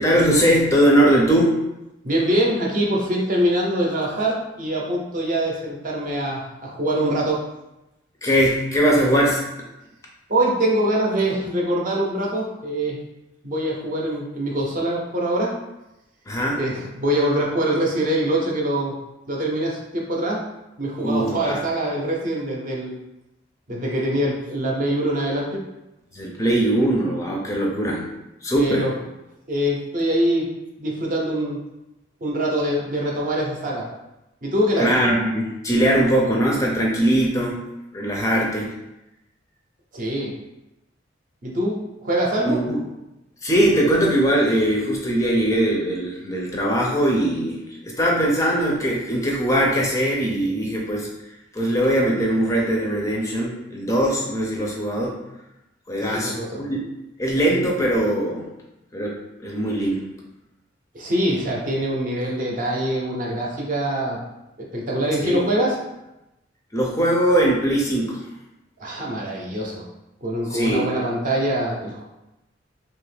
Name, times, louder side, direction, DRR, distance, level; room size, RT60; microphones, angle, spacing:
voice 1, 0.0-1.5 8.2-9.4 16.3-16.6 21.0-21.6 26.1-28.9 34.8-37.6 37.9-38.7 42.4-42.8 43.4-47.6 47.8-51.1 51.5-55.2 55.9-56.8 57.2-58.5 58.9-60.0 65.2-65.5 66.7-68.2 70.5-70.9, right 1 dB, 15° left, -2 dB, 0.4 m, -21 dB
voice 2, 2.0-7.4 10.3-13.0 13.4-15.5 16.6-18.9 19.3-20.4 20.8-22.9 23.7-25.6 28.6-28.9 29.5-30.5 30.8-31.6 32.2-33.9 34.4-34.9 39.9-40.3 41.4-42.6 56.0-56.6 60.9-64.2 64.7-65.8 68.8-69.8 70.2-72.0, right 1 dB, 45° right, -2 dB, 0.6 m, -24 dB
2.8 x 2.3 x 3.2 m, 0.93 s
head